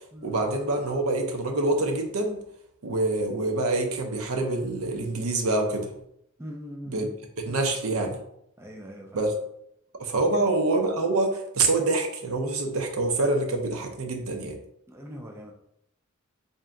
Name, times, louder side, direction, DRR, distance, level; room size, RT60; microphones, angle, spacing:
voice 1, 0.2-2.4 2.8-5.9 6.9-7.1 7.5-8.2 9.1-9.3 10.0-14.6, right 2 dB, 80° right, 4 dB, 0.7 m, -26 dB
voice 2, 6.4-7.1 8.6-9.2 10.3-10.4 14.9-15.5, equal, 10° right, 1 dB, 0.4 m, -41 dB
3.3 x 2.7 x 3.6 m, 0.75 s
head